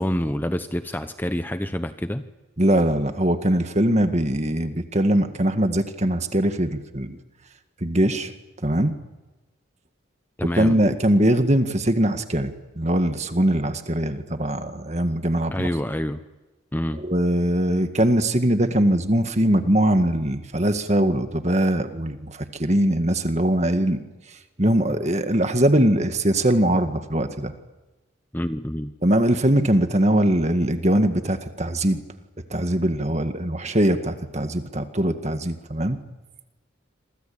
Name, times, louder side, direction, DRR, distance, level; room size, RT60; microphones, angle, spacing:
voice 1, 0.0-2.2 10.4-10.8 15.5-16.2 16.7-17.0 28.3-28.9, equal, 10° left, 9 dB, 0.8 m, -27 dB
voice 2, 2.6-7.2 7.8-8.3 8.6-8.9 10.5-15.7 17.0-24.0 24.6-27.5 29.0-32.0 32.5-36.0, right 1 dB, 35° right, 7 dB, 1.8 m, -21 dB
28.0 x 24.5 x 8.7 m, 1.2 s
head